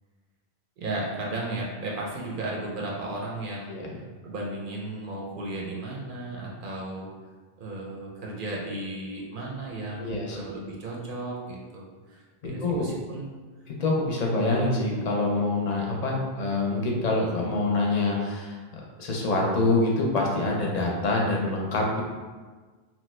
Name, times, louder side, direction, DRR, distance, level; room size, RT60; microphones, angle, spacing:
voice 1, 0.8-3.7 4.2-7.1 7.6-13.3, right 2 dB, 60° right, -3 dB, 0.7 m, -35 dB
voice 2, 10.0-10.4 12.4-12.9 13.7-22.0, left 2 dB, 50° left, -1 dB, 0.6 m, -26 dB
2.9 x 2.2 x 3.1 m, 1.4 s
omnidirectional pair, 1.0 m